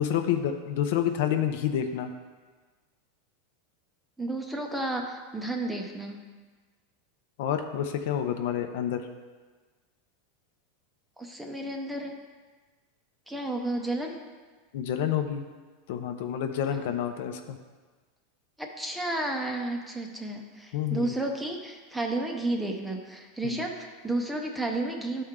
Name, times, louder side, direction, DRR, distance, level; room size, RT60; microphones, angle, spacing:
voice 1, 0.0-2.1 7.4-9.0 14.7-15.4 15.9-17.6 20.7-21.2 23.4-23.6, left 9 dB, 60° left, 7 dB, 0.6 m, -28 dB
voice 2, 4.2-6.2 11.2-12.1 13.3-14.2 16.7-16.8 18.6-25.2, right 2 dB, 5° right, 2 dB, 0.6 m, -32 dB
12.0 x 4.4 x 3.7 m, 1.4 s
supercardioid pair, 165°, 0 cm